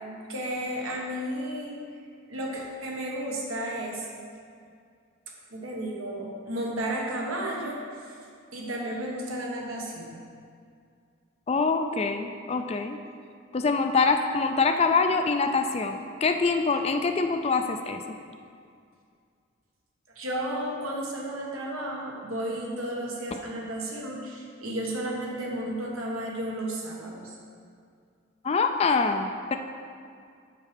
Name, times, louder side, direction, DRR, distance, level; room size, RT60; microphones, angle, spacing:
voice 1, 0.3-1.8 2.3-4.1 5.5-8.2 8.5-10.2 20.1-27.4, right 1 dB, 85° right, -2 dB, 1.4 m, -33 dB
voice 2, 11.5-13.0 13.5-18.0 28.4-29.5, left 4 dB, 30° left, 6 dB, 0.3 m, -25 dB
6.4 x 6.3 x 5.0 m, 2.3 s
head